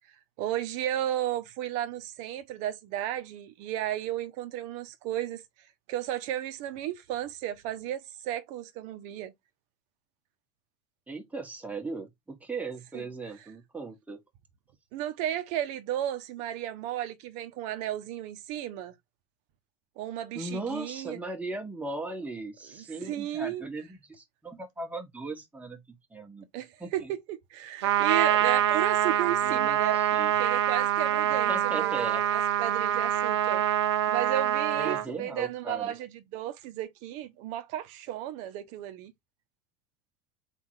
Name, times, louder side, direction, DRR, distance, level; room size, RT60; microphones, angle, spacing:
voice 1, 0.4-5.4 5.9-9.3 12.9-13.0 14.9-18.9 20.0-21.2 22.7-23.6 26.5-27.2 27.5-30.0 30.4-33.6 34.1-39.1, right 12 dB, 60° right, 1.0 m, -34 dB
voice 2, 11.1-14.2 20.3-26.5 26.8-27.1 29.4-30.3 31.3-32.2 34.7-35.9, right 3 dB, 10° right, 1.5 m, -38 dB
Trumpet, 27.8-35.0, right 11 dB, 80° right, 0.6 m, -25 dB
3.7 x 2.8 x 4.7 m
hypercardioid pair, 80°, 14 cm